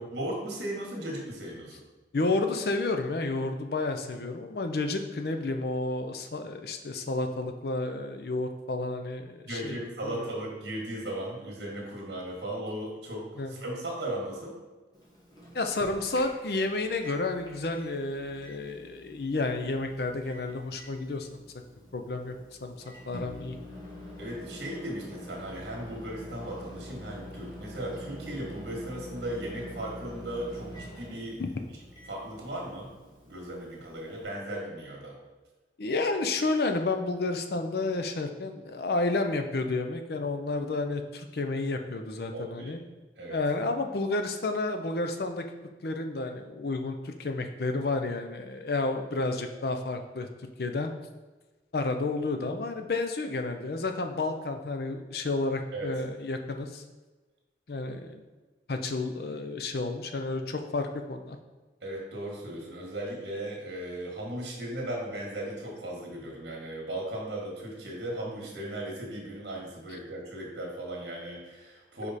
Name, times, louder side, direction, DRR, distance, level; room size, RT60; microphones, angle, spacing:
voice 1, 0.0-1.8 9.5-14.5 24.2-31.4 32.1-32.9 33.2-35.2 42.3-42.7 43.2-43.4 55.7-55.9 61.8-72.1, right 1 dB, 70° right, -1 dB, 1.6 m, -37 dB
voice 2, 2.1-10.3 13.4-13.5 15.5-21.4 21.9-22.7 23.1-23.6 31.4-31.5 35.8-42.8 43.3-45.4 45.8-50.3 50.6-50.9 51.7-56.8 57.7-58.2 58.7-61.4, left 2 dB, 60° left, 6 dB, 0.5 m, -31 dB
Microwave oven, 14.9-34.2, left 1 dB, 20° left, 1.4 m, -46 dB
5.0 x 4.9 x 4.2 m, 1.2 s
head